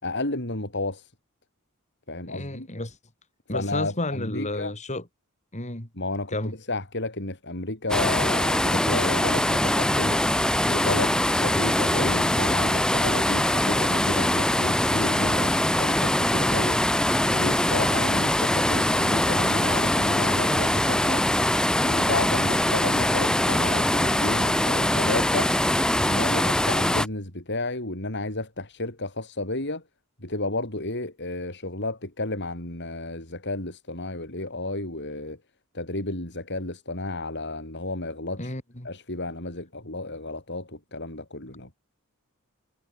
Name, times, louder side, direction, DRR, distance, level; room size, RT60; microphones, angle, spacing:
voice 1, 0.0-1.1 2.1-2.7 3.5-4.7 5.9-10.2 10.7-16.8 17.3-21.2 21.8-25.5 26.0-29.8 30.2-35.4 35.7-38.5 38.8-41.8, left 2 dB, 50° left, 6.5 m, -32 dB
voice 2, 2.3-3.0 3.5-5.0 5.5-5.9 6.3-6.5 38.4-38.9, left 1 dB, 30° left, 4.0 m, -31 dB
sound 1, 7.9-27.1, left 1 dB, 5° left, 0.5 m, -22 dB
head